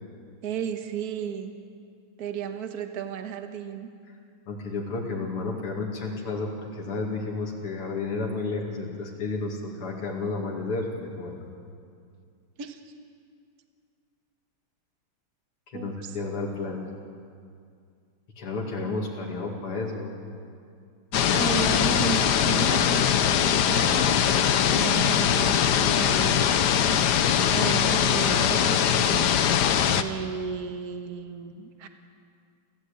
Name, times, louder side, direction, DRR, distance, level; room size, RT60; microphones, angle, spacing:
voice 1, 0.4-1.5 2.2-3.9 12.6-12.8 15.7-16.1 21.3-24.4 24.7-26.5 27.5-29.3 29.9-31.9, right 7 dB, 50° right, 6 dB, 1.6 m, -34 dB
voice 2, 4.5-11.5 15.7-16.9 18.4-20.1, left 3 dB, 80° left, -2 dB, 3.2 m, -32 dB
sound 1, 21.1-30.0, left 9 dB, 60° left, 1.2 m, -22 dB
30.0 x 13.5 x 8.5 m, 2.3 s
omnidirectional pair, 2.4 m